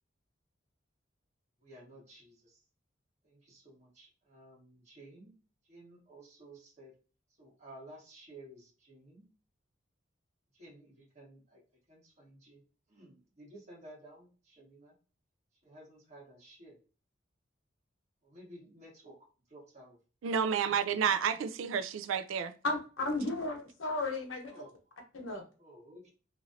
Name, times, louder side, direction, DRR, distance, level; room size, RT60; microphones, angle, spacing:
voice 1, 1.6-2.6 3.2-5.3 5.6-6.9 7.4-9.3 10.5-11.6 11.9-12.6 12.9-14.9 15.6-16.8 18.2-20.0 24.4-24.7 25.6-26.1, right 1 dB, 35° right, 1.4 m, -54 dB
voice 2, 20.2-22.5, right 7 dB, 85° right, 0.4 m, -30 dB
voice 3, 22.6-24.5 25.1-25.4, left 2 dB, 90° left, 1.0 m, -34 dB
3.0 x 2.5 x 2.6 m
head